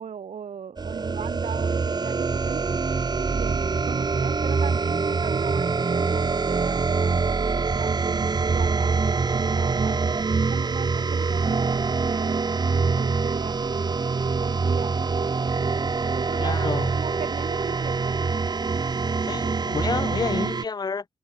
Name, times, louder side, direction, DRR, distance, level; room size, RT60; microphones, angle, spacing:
voice 1, 0.0-2.7 3.3-10.2 10.5-12.4 12.9-15.2 16.1-18.2, right 7 dB, 70° right, 1.8 m, -38 dB
sound 1, 0.8-20.6, right 4 dB, 35° right, 1.4 m, -24 dB
voice 2, 16.4-16.9 19.2-21.0, left 5 dB, 35° left, 0.6 m, -29 dB
open air
wide cardioid pair, 135°, 12 cm